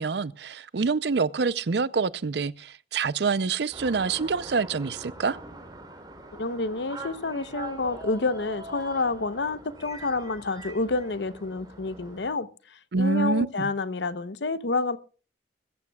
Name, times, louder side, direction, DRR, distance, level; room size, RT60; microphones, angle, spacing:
voice 1, 0.0-5.4 12.9-13.7, right 4 dB, 70° right, 0.5 m, -26 dB
sound 1, 3.7-12.3, right 2 dB, 25° right, 3.4 m, -43 dB
voice 2, 6.4-15.0, left 3 dB, 75° left, 0.8 m, -29 dB
22.0 x 14.5 x 2.3 m
head